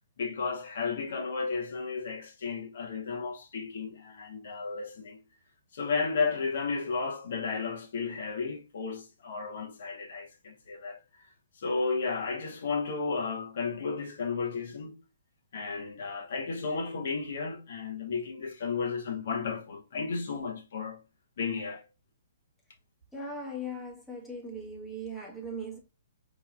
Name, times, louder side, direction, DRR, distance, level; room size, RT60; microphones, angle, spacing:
voice 1, 0.2-5.2 5.7-11.0 11.6-14.9 15.5-21.0 21.4-21.8, left 4 dB, 60° left, 1.2 m, -33 dB
voice 2, 23.1-25.8, equal, 5° left, 1.1 m, -39 dB
4.6 x 3.1 x 2.4 m
hypercardioid pair, 160°, 0 cm